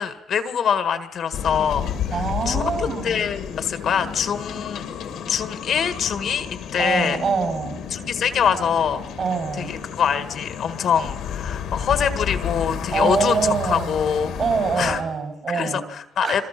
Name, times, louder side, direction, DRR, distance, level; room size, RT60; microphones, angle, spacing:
voice 1, 0.0-1.9 2.5-2.6 3.0-4.8 5.3-6.5 6.7-7.2 7.9-9.0 9.6-14.3 14.8-15.0 15.5-16.4, left 7 dB, 65° left, 10 dB, 1.7 m, -24 dB
sound 1, 1.3-15.0, left 8 dB, 80° left, 2.2 m, -31 dB
voice 2, 2.1-3.3 6.8-7.8 9.2-9.7 12.9-14.0 14.4-15.8 16.2-16.4, right 5 dB, 50° right, 5 dB, 7.7 m, -25 dB
26.5 x 23.0 x 6.0 m, 0.81 s
cardioid pair, 90°, 0 cm